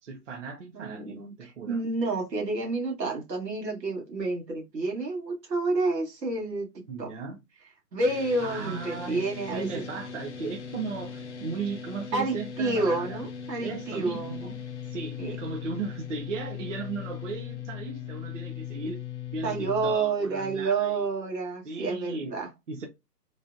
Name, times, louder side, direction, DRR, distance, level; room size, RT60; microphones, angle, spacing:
voice 1, 0.0-1.8 6.9-7.4 8.4-13.2 13.6-14.5 14.8-19.0 19.3-21.1 21.6-22.4 22.7-22.9, right 4 dB, 50° right, 0.6 m, -36 dB
voice 2, 0.7-6.7 7.0-7.1 7.9-9.8 12.1-14.5 15.2-15.3 19.4-22.5, right 3 dB, 85° right, 1.7 m, -29 dB
sound 1, 8.0-19.9, left 8 dB, 50° left, 0.4 m, -39 dB
3.2 x 2.1 x 2.6 m
hypercardioid pair, 160°, 49 cm